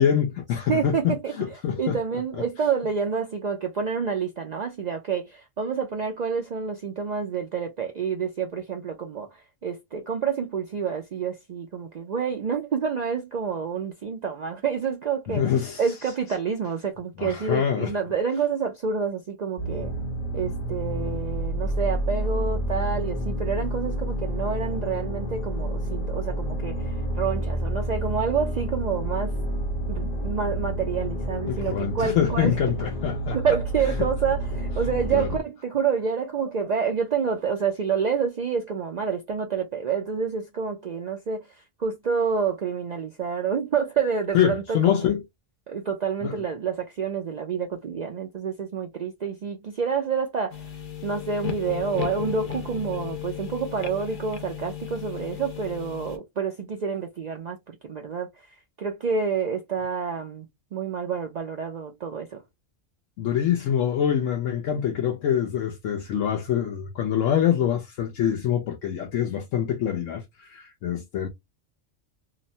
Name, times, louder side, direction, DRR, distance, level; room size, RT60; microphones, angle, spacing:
voice 1, 0.0-2.0 15.3-15.8 17.2-17.9 31.5-33.4 35.1-35.3 44.3-45.2 46.2-46.4 63.2-71.3, left 9 dB, 80° left, 1.0 m, -25 dB
voice 2, 0.7-15.5 15.8-19.9 20.3-29.4 29.9-32.6 33.3-45.1 45.7-50.7 51.0-62.4, right 6 dB, 70° right, 0.4 m, -28 dB
sound 1, 19.6-35.4, right 1 dB, 35° left, 0.9 m, -29 dB
sound 2, 50.5-56.2, left 10 dB, 55° left, 0.6 m, -35 dB
3.0 x 2.1 x 2.6 m
omnidirectional pair, 1.3 m